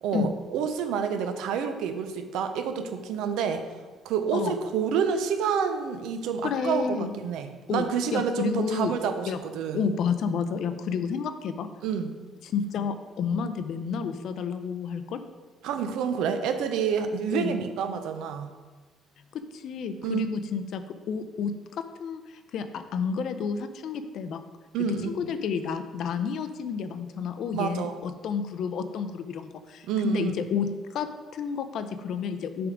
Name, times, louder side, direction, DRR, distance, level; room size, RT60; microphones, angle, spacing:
voice 1, 0.0-3.7 4.0-9.9 11.8-12.2 15.6-18.5 20.0-20.3 24.7-25.1 27.5-28.0 29.9-30.3, right 7 dB, 85° right, 8 dB, 0.6 m, -28 dB
voice 2, 6.4-7.1 7.7-7.8 8.1-8.9 9.3-9.4 9.7-11.7 12.4-15.2 17.3-17.7 19.3-24.4 25.0-32.7, left 6 dB, 60° left, 10 dB, 0.4 m, -30 dB
6.9 x 3.5 x 4.9 m, 1.3 s
cardioid pair, 150°, 0 cm